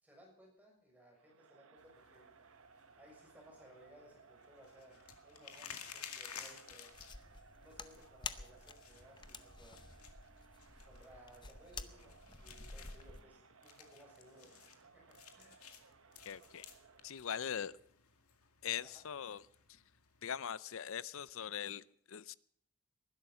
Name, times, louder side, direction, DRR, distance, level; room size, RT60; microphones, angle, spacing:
voice 1, 0.0-2.3 3.0-6.9 7.5-9.8 10.9-15.7 17.3-17.7 18.8-19.0, right 1 dB, 5° right, -1 dB, 6.5 m, -61 dB
Crowd, 1.2-17.3, right 5 dB, 65° right, 0.8 m, -63 dB
sound 1, 1.8-20.3, left 8 dB, 80° left, 2.1 m, -56 dB
sound 2, 6.9-13.2, left 4 dB, 20° left, 0.6 m, -50 dB
voice 2, 16.3-16.7 17.0-17.7 18.6-19.4 19.7-19.8 20.2-22.3, left 8 dB, 65° left, 19 dB, 0.5 m, -41 dB
20.0 x 11.5 x 5.7 m, 0.70 s
head